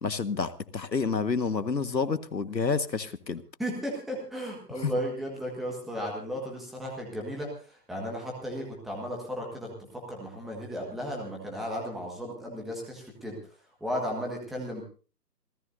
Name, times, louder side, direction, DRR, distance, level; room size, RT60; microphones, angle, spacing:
voice 1, 0.0-3.4 4.8-4.9, left 5 dB, 85° left, 12 dB, 1.7 m, -29 dB
voice 2, 3.6-13.4 13.8-14.8, equal, ahead, -1 dB, 1.7 m, -35 dB
28.5 x 14.5 x 2.7 m, 0.36 s
figure-of-eight pair, 155°, 50 cm